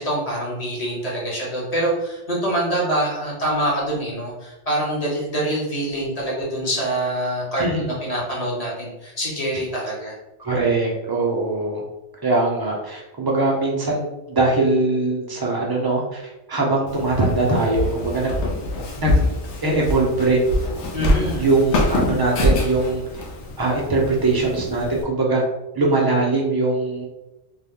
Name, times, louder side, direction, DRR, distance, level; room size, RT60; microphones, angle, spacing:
voice 1, 0.0-10.1 20.9-21.5, right 1 dB, 35° left, -4 dB, 1.0 m, -25 dB
voice 2, 7.6-7.9 10.4-11.8 12.2-16.2 16.5-18.3 19.0-19.3 19.6-20.5 21.4-23.0 23.6-25.4 25.7-27.1, right 2 dB, 25° right, -2 dB, 0.5 m, -21 dB
Walk footsteps, 16.9-25.0, left 1 dB, 80° left, 1.0 m, -25 dB
2.9 x 2.2 x 3.5 m, 0.99 s
omnidirectional pair, 1.2 m